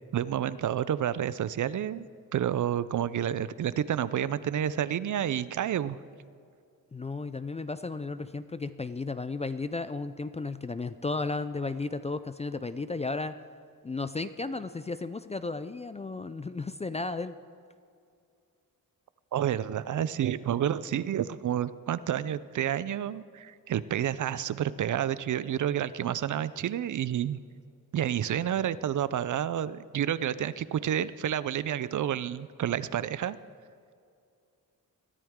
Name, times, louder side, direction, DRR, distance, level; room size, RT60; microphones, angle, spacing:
voice 1, 0.1-2.0 2.3-6.0 19.3-27.4 27.9-33.4, right 10 dB, 60° right, 16 dB, 0.5 m, -29 dB
voice 2, 6.9-13.3 13.8-17.4, left 3 dB, 20° left, 12 dB, 0.3 m, -34 dB
21.5 x 14.0 x 3.6 m, 2.3 s
wide cardioid pair, 160°, 35 cm